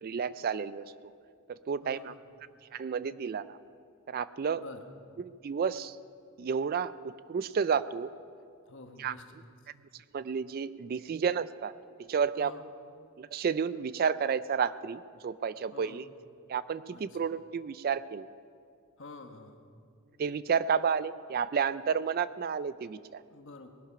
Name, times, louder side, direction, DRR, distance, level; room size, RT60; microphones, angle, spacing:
voice 1, 0.0-1.1 1.5-2.1 2.7-3.6 4.1-4.6 5.2-6.0 6.4-8.1 9.0-9.1 9.9-11.7 12.0-12.5 13.2-16.1 16.5-18.3 20.2-23.2, right 6 dB, 40° right, 16 dB, 0.3 m, -31 dB
voice 2, 1.8-2.2 4.6-4.9 8.7-9.2 12.4-12.6 15.7-16.1 16.9-17.0 19.0-19.6 23.3-23.7, left 3 dB, 55° left, 6 dB, 1.2 m, -48 dB
19.0 x 11.5 x 5.8 m, 2.3 s
head